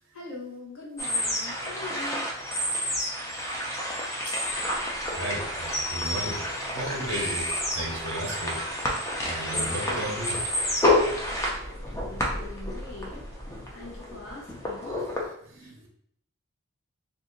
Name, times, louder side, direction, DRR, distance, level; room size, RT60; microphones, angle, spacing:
voice 1, 0.1-2.3 12.0-13.2 13.7-15.1 15.6-15.9, left 3 dB, 75° left, -2 dB, 1.0 m, -42 dB
sound 1, 1.0-15.2, left 1 dB, 15° left, 0.5 m, -29 dB
voice 2, 5.2-7.5 7.7-8.6 9.3-10.4 15.5-15.9, right 1 dB, 55° right, 1 dB, 0.6 m, -34 dB
2.6 x 2.6 x 3.7 m, 0.68 s
head